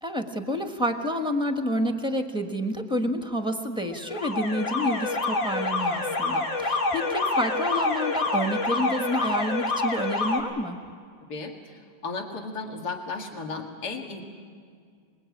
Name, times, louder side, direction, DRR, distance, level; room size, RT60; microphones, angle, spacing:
voice 1, 0.0-10.8, equal, 5° right, 5 dB, 1.2 m, -29 dB
Alarm, 3.9-10.4, left 2 dB, 65° left, 3.2 m, -27 dB
voice 2, 11.3-14.2, left 4 dB, 50° left, 2 dB, 2.7 m, -35 dB
25.0 x 21.5 x 8.6 m, 2.1 s
omnidirectional pair, 2.2 m